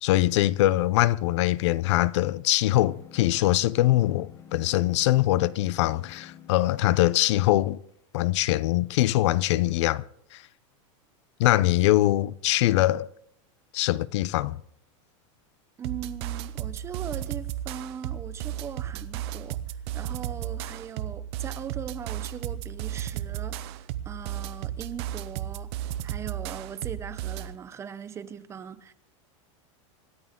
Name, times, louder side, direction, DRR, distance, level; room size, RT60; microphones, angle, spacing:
voice 1, 0.0-7.8 8.1-10.0 10.3-10.4 11.4-13.1 13.7-14.6, left 16 dB, 65° left, 0.5 m, -23 dB
sound 1, 2.9-7.7, left 8 dB, 20° left, 1.0 m, -50 dB
voice 2, 15.8-19.6 19.9-28.9, right 8 dB, 15° right, 0.7 m, -40 dB
sound 2, 15.8-27.6, right 12 dB, 55° right, 0.8 m, -34 dB
26.0 x 11.0 x 3.7 m
supercardioid pair, 160°, 16 cm